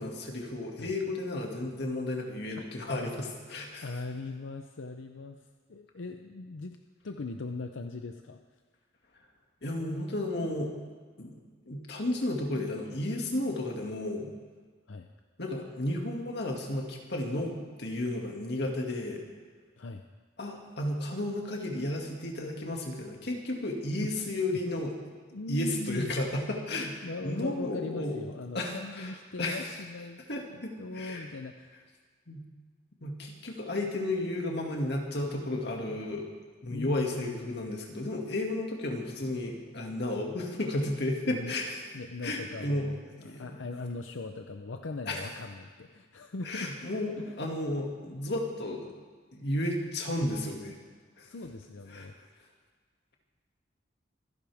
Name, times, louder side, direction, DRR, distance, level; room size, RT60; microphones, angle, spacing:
voice 1, 0.0-3.9 9.6-10.7 11.2-11.3 11.7-14.3 15.4-19.2 20.4-24.9 25.5-28.2 28.5-29.7 30.3-31.2 32.3-32.4 33.0-36.3 36.6-41.8 42.2-42.9 43.2-43.4 45.1-45.2 46.4-48.9 49.3-50.8 51.2-51.3 51.9-52.1, left 1 dB, 60° left, 1 dB, 2.3 m, -33 dB
voice 2, 3.8-6.8 7.0-8.4 14.9-15.1 19.8-20.0 24.0-24.1 24.5-24.6 25.3-26.1 27.0-30.2 30.5-31.7 35.9-36.0 36.7-37.4 41.2-41.6 41.9-43.0 43.2-46.7 47.2-47.4 51.2-52.1, left 3 dB, 90° left, 5 dB, 0.7 m, -40 dB
25.5 x 11.0 x 3.5 m, 1.5 s
head